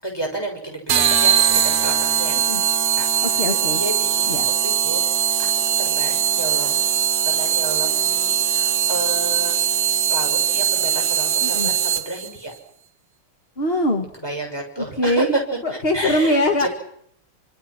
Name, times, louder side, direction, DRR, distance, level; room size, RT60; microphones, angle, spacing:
voice 1, 0.0-2.4 3.0-3.1 3.3-4.3 4.6-5.0 5.4-5.5 5.8-6.9 7.2-9.5 10.1-12.5 14.2-15.4 15.9-16.7, right 1 dB, 10° left, 2 dB, 6.3 m, -31 dB
sound 1, 0.9-12.3, right 9 dB, 50° right, 1.5 m, -20 dB
voice 2, 3.2-3.8 4.3-4.5 11.4-11.7 13.6-14.1 14.8-15.3 15.6-16.7, left 1 dB, 30° left, 5 dB, 1.9 m, -22 dB
27.5 x 25.5 x 6.1 m, 0.68 s
omnidirectional pair, 2.3 m